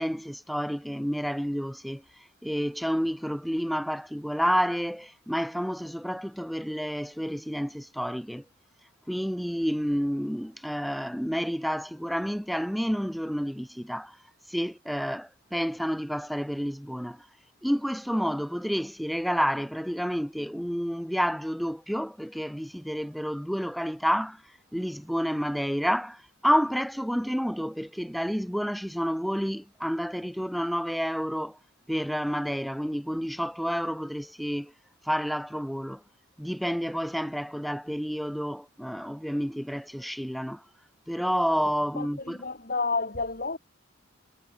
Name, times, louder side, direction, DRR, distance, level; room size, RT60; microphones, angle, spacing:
voice 1, 0.0-2.0 2.4-8.4 9.1-14.1 14.5-17.2 17.6-24.4 24.7-31.6 31.9-34.7 35.1-36.0 36.4-40.6 41.1-42.4, equal, ahead, 2.9 m, -29 dB
voice 2, 42.0-43.6, left 3 dB, 45° left, 5.3 m, -30 dB
head